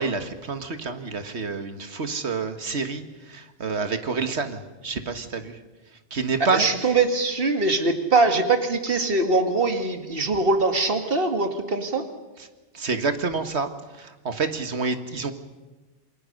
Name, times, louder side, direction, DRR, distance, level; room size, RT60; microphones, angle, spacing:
voice 1, 0.0-5.6 6.1-6.9 12.4-12.5 12.7-13.7 13.9-15.3, right 4 dB, 70° right, 8 dB, 1.9 m, -28 dB
voice 2, 6.5-12.0, right 3 dB, 55° right, 6 dB, 2.2 m, -22 dB
28.5 x 21.0 x 6.6 m, 1.2 s
omnidirectional pair, 1.2 m